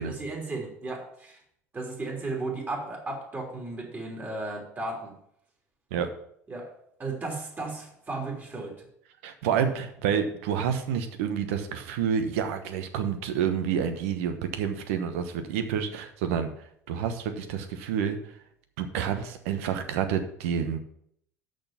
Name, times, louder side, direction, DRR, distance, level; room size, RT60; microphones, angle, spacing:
voice 1, 0.1-1.4 1.7-5.1 6.5-6.7 7.0-8.9, right 3 dB, 25° right, -1 dB, 3.5 m, -35 dB
voice 2, 9.2-16.5 16.9-18.2 18.8-20.8, right 8 dB, 70° right, 8 dB, 1.1 m, -28 dB
6.5 x 6.2 x 7.1 m, 0.69 s
hypercardioid pair, 70°, 8 cm